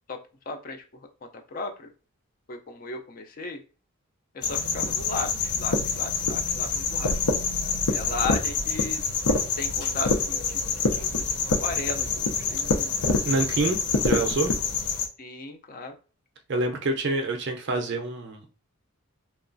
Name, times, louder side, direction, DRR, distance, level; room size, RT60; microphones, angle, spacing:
voice 1, 0.5-0.8 1.2-1.9 2.5-3.6 4.3-7.1 7.9-9.0 9.6-10.6 10.9-12.9 15.2-15.9, left 3 dB, 40° left, 4 dB, 0.4 m, -35 dB
sound 1, 4.4-15.1, left 4 dB, 85° left, 0.6 m, -26 dB
voice 2, 13.2-14.5 16.5-18.5, right 2 dB, 50° right, 4 dB, 0.5 m, -27 dB
3.0 x 2.3 x 2.5 m, 0.36 s
head